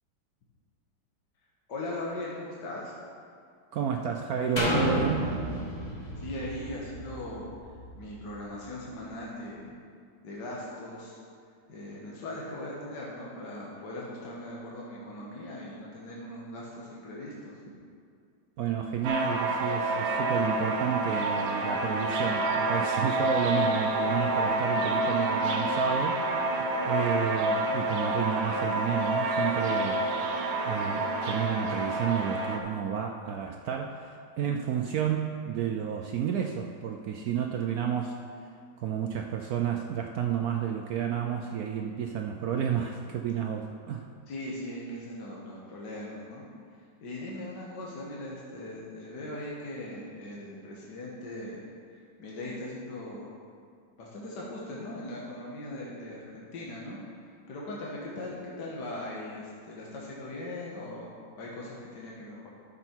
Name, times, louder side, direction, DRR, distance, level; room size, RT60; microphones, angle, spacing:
voice 1, 1.7-2.9 6.2-7.5 7.9-9.8 10.2-11.2 11.7-17.6 44.3-46.4 47.0-53.3 54.0-57.0 57.5-62.5, left 1 dB, 60° left, -5 dB, 1.9 m, -39 dB
voice 2, 3.7-5.4 18.6-26.3 26.5-30.0 30.6-38.2 38.8-44.1, right 8 dB, 75° right, 3 dB, 0.8 m, -31 dB
sound 1, 4.6-8.3 8.9-9.0, equal, 25° left, 1.0 m, -32 dB
sound 2, 19.0-32.6, right 2 dB, 90° right, 1.7 m, -28 dB
12.5 x 6.7 x 4.5 m, 2.3 s
omnidirectional pair, 2.1 m